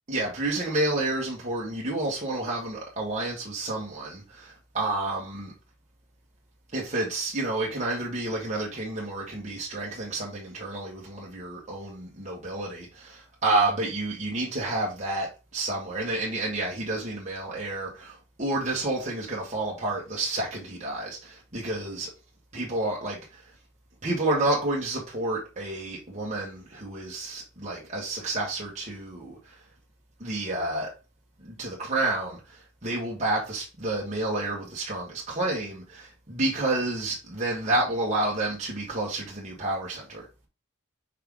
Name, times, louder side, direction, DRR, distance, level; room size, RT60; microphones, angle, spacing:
voice 1, 0.1-5.5 6.7-22.1 22.5-23.4 24.0-29.4 30.2-30.9 31.4-40.3, right 2 dB, 35° right, 1.5 m, -30 dB
5.6 x 4.8 x 3.8 m
head